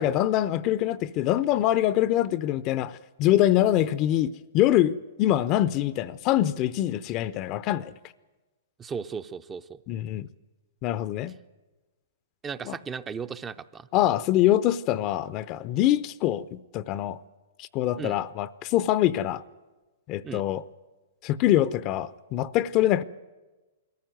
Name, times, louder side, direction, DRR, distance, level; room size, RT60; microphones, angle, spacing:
voice 1, 0.0-7.9 9.9-10.3 10.8-11.3 12.7-12.8 13.9-17.2 17.6-19.4 20.1-20.6 21.2-23.0, left 13 dB, 40° left, 0.6 m, -24 dB
voice 2, 8.8-9.8 12.4-13.9 18.0-18.2 20.2-20.4, right 6 dB, 20° right, 0.6 m, -36 dB
22.0 x 14.5 x 9.3 m
hypercardioid pair, 125°, 0 cm